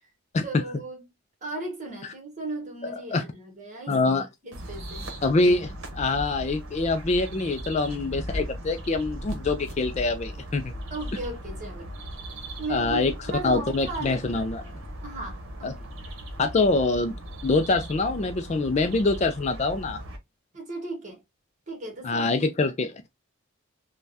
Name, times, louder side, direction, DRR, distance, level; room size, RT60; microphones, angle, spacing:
voice 1, 0.4-1.0 1.4-4.0 4.4-5.1 10.9-11.9 12.6-14.4 15.0-15.8 20.5-21.2 21.7-22.5, right 2 dB, 35° right, 1.2 m, -36 dB
voice 2, 3.9-4.3 5.2-10.7 12.7-13.1 13.4-14.6 15.6-15.7 16.4-17.1 17.4-20.0 22.0-22.9, left 3 dB, 30° left, 0.3 m, -24 dB
sound 1, 4.5-20.2, equal, 75° right, 0.9 m, -38 dB
3.3 x 2.2 x 2.5 m
head